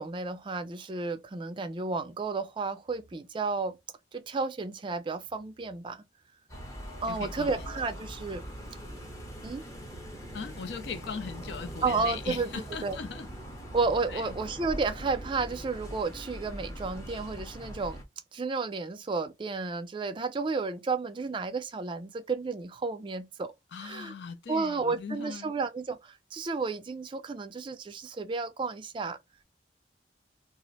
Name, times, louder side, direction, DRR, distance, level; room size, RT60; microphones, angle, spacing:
voice 1, 0.0-3.8 4.1-6.0 7.0-8.4 9.4-9.6 11.8-13.0 13.7-18.0 18.3-23.5 23.8-24.1 24.5-29.2, right 4 dB, 25° right, 0.4 m, -32 dB
sound 1, 6.5-18.0, equal, 15° left, 0.7 m, -42 dB
voice 2, 7.1-7.7 10.3-13.3 14.1-14.4 23.7-25.6, left 5 dB, 65° left, 0.4 m, -39 dB
2.4 x 2.1 x 3.9 m
head